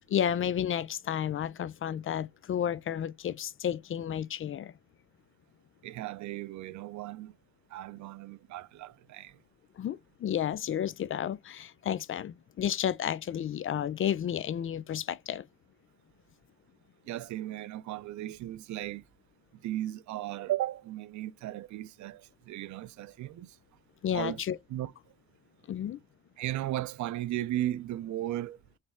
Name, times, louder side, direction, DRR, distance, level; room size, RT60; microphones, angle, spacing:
voice 1, 0.1-4.7 9.8-15.5 24.0-24.6 25.7-26.0, left 9 dB, 45° left, 0.4 m, -32 dB
voice 2, 5.8-7.3 7.7-9.4 17.1-19.0 19.6-23.6 24.1-24.4 24.7-24.9 26.4-28.6, right 14 dB, 70° right, 0.5 m, -36 dB
3.3 x 3.3 x 4.2 m
cardioid pair, 90°, 30 cm